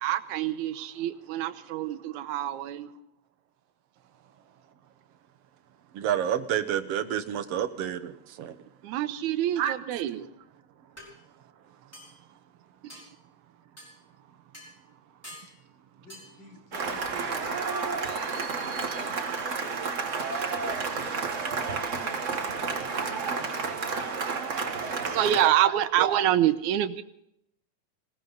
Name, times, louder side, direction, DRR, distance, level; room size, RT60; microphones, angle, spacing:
voice 1, 0.0-2.9 8.8-10.3 25.1-27.0, right 11 dB, 90° right, 2.3 m, -26 dB
voice 2, 5.9-8.6 9.6-9.8 21.0-21.1, right 10 dB, 65° right, 1.8 m, -29 dB
sound 1, 10.4-10.5 11.0-11.1 11.9-12.2 12.9-13.1 13.8-13.9 14.5-14.7 15.2-15.5 16.1-16.3, equal, 5° left, 5.1 m, -46 dB
voice 3, 16.0-17.4 24.6-25.6, left 2 dB, 35° left, 5.5 m, -47 dB
Cheering / Applause, 16.7-25.5, right 4 dB, 40° right, 1.0 m, -31 dB
20.0 x 18.0 x 4.0 m
omnidirectional pair, 3.4 m